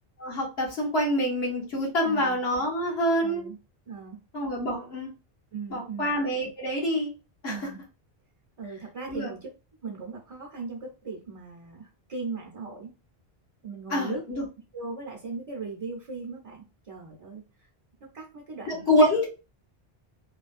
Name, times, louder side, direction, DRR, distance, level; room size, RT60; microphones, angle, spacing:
voice 1, 0.2-3.4 4.3-5.1 5.7-7.1 7.4-7.6 9.1-9.3 13.9-14.4 18.7-19.3, equal, 75° left, -2 dB, 1.4 m, -26 dB
voice 2, 2.0-2.4 3.2-3.6 3.9-4.2 5.5-6.1 7.5-7.8 8.6-9.5 9.8-12.9 13.6-14.2 14.7-17.7 18.1-18.8, right 4 dB, 40° right, -1 dB, 0.7 m, -38 dB
3.1 x 2.2 x 2.4 m, 0.31 s
omnidirectional pair, 1.0 m